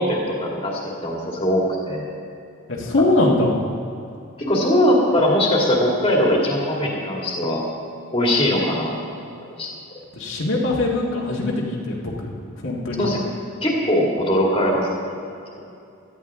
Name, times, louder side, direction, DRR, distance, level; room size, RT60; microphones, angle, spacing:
voice 1, 0.0-2.1 4.4-7.6 8.1-8.9 9.6-9.7 13.0-13.2 13.6-15.3, left 1 dB, 25° left, -3 dB, 2.2 m, -21 dB
voice 2, 2.7-3.6 10.1-12.1 12.6-13.1, left 2 dB, 65° left, -4 dB, 1.7 m, -21 dB
17.5 x 13.0 x 3.6 m, 2.5 s
head